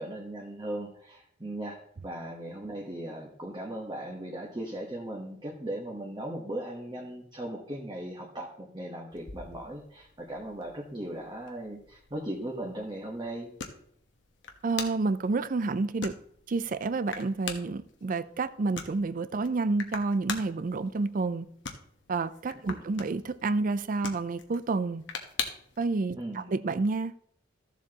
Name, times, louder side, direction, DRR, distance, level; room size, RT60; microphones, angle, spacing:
voice 1, 0.0-13.5 22.7-22.8 26.2-26.5, right 1 dB, 25° right, 1.1 m, -38 dB
sound 1, 9.1-25.8, left 6 dB, 80° left, 1.1 m, -43 dB
voice 2, 14.6-16.1 16.5-21.5 22.1-25.0 25.8-27.1, right 3 dB, 45° right, 0.4 m, -29 dB
14.0 x 7.2 x 2.9 m
head